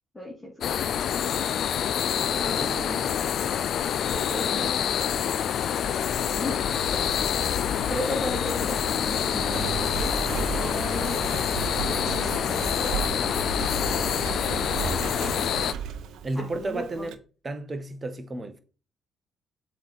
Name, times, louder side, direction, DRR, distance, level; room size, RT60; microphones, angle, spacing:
voice 1, 0.1-0.5 2.3-3.0 4.1-4.7 6.3-7.1 7.9-9.6 9.9-10.1 10.5-11.2 12.0-12.9 16.4-17.1, equal, 10° left, 2.1 m, -35 dB
sound 1, 0.6-15.7, left 9 dB, 65° left, 0.3 m, -27 dB
voice 2, 2.4-3.3 15.1-15.5 16.2-17.2 17.4-18.6, right 2 dB, 30° right, 0.9 m, -34 dB
Engine, 6.3-17.1, right 8 dB, 85° right, 0.6 m, -36 dB
sound 2, 6.4-15.0, left 5 dB, 50° left, 1.1 m, -38 dB
7.2 x 3.2 x 4.1 m
cardioid pair, 90°, 0 cm